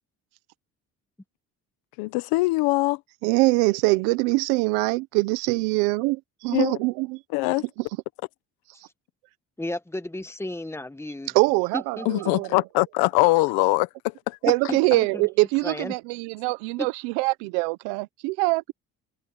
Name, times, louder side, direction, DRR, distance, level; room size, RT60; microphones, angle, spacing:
voice 1, 2.0-3.0 6.5-6.8 7.3-7.7 12.0-14.4, left 22 dB, 85° left, 1.5 m, -22 dB
voice 2, 3.2-7.2 11.3-12.5 14.4-18.7, right 24 dB, 85° right, 1.2 m, -23 dB
voice 3, 9.6-11.3 11.7-12.3 14.5-15.3 15.6-16.0 16.8-16.9, left 1 dB, 5° left, 1.8 m, -33 dB
supercardioid pair, 65°, 36 cm